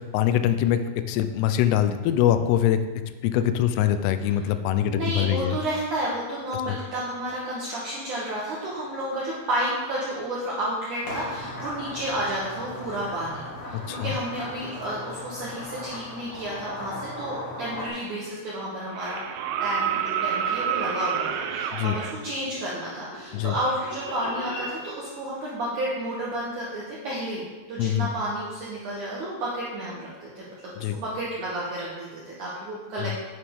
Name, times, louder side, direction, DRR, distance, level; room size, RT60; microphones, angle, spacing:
voice 1, 0.0-2.8 3.2-5.6 6.7-6.8 13.7-14.2 21.7-22.0 23.3-23.5 27.8-28.1 30.8-31.0 33.0-33.2, left 11 dB, 85° left, 10 dB, 2.4 m, -23 dB
voice 2, 4.9-19.2 19.6-33.2, right 1 dB, 70° right, -6 dB, 1.9 m, -31 dB
sound 1, 11.0-17.9, left 1 dB, 45° left, 2.5 m, -37 dB
sound 2, 17.8-17.9 18.9-22.1 23.9-24.0, right 8 dB, 85° right, 2.3 m, -28 dB
sound 3, 22.0-24.8, equal, 65° left, 4.3 m, -39 dB
9.1 x 7.2 x 3.6 m, 1.3 s
omnidirectional pair, 5.2 m